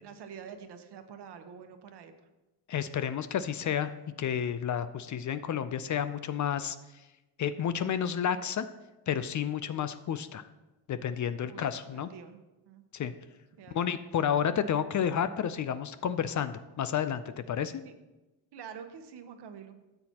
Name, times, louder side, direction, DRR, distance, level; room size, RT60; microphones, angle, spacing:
voice 1, 0.0-2.1 11.5-11.6 11.9-12.4 12.6-12.8 13.5-14.0 17.8-17.9 18.5-19.8, right 7 dB, 65° right, 7 dB, 1.1 m, -47 dB
voice 2, 2.7-3.9 4.2-6.8 7.4-8.7 9.1-10.4 10.9-12.1 12.9-13.1 13.7-17.2 17.5-17.8, left 8 dB, 45° left, 12 dB, 0.5 m, -30 dB
13.0 x 7.8 x 2.9 m, 1.0 s
cardioid pair, 100°, 44 cm